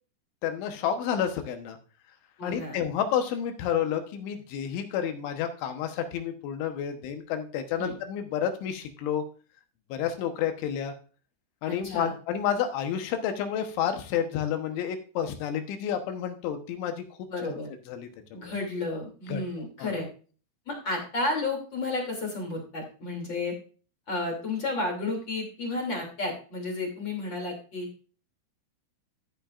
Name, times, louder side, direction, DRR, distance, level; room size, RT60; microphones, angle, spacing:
voice 1, 0.4-1.8 2.4-9.2 9.9-10.9 11.6-17.0 17.5-17.6 17.9-18.5 19.3-19.4 19.8-19.9, left 9 dB, 80° left, 6 dB, 3.5 m, -30 dB
voice 2, 2.4-2.8 7.8-7.9 11.6-12.1 17.3-17.7 18.3-20.1 20.7-23.5 24.1-27.9, left 2 dB, 30° left, 1 dB, 2.7 m, -32 dB
13.5 x 9.1 x 2.5 m, 0.38 s
omnidirectional pair, 5.3 m